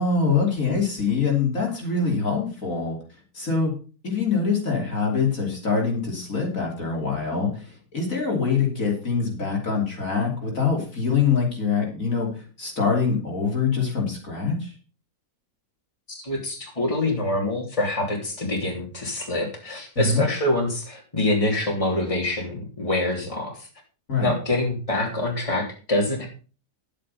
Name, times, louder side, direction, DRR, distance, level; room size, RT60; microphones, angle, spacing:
voice 1, 0.0-3.0 3.3-3.7 4.0-14.7 19.9-20.2 24.1-24.3, left 5 dB, 60° left, 0 dB, 3.4 m, -24 dB
voice 2, 16.1-23.7 24.2-26.3, left 1 dB, 20° left, 0 dB, 3.2 m, -25 dB
10.5 x 8.7 x 5.4 m, 0.37 s
omnidirectional pair, 1.6 m